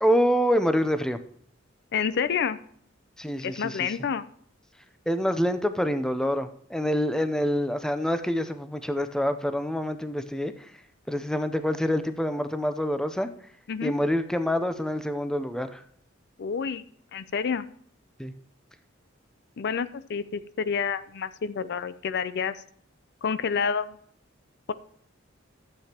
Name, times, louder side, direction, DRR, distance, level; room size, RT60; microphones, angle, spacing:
voice 1, 0.0-1.2 3.2-3.9 5.1-10.5 11.1-13.3 13.8-15.8 18.2-18.3, equal, 5° left, 10 dB, 0.5 m, -26 dB
voice 2, 1.9-2.6 3.4-4.2 13.7-13.9 16.4-16.8 17.1-17.7 19.6-22.5 23.2-24.0, left 6 dB, 55° left, 14 dB, 0.5 m, -28 dB
13.0 x 7.8 x 2.9 m, 0.65 s
head